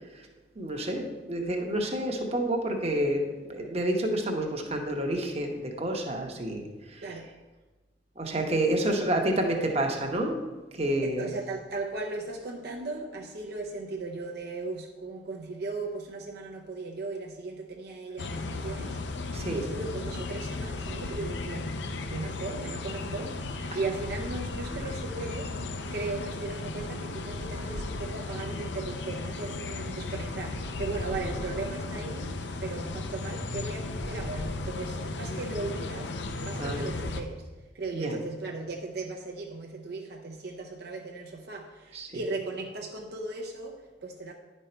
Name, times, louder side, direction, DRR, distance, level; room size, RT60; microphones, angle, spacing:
voice 1, 0.6-7.2 8.2-10.4 10.7-11.3 19.3-19.6 23.7-23.8 24.6-24.7 36.6-36.9 37.9-38.2 41.9-42.3, right 1 dB, 35° right, 2 dB, 1.0 m, -29 dB
voice 2, 11.0-19.0 19.5-21.8 22.1-25.6 25.9-37.5 37.7-44.3, right 3 dB, 60° right, 1 dB, 0.6 m, -37 dB
sound 1, 18.2-37.2, left 2 dB, 70° left, 0.6 m, -35 dB
9.9 x 5.4 x 4.4 m, 1.2 s
head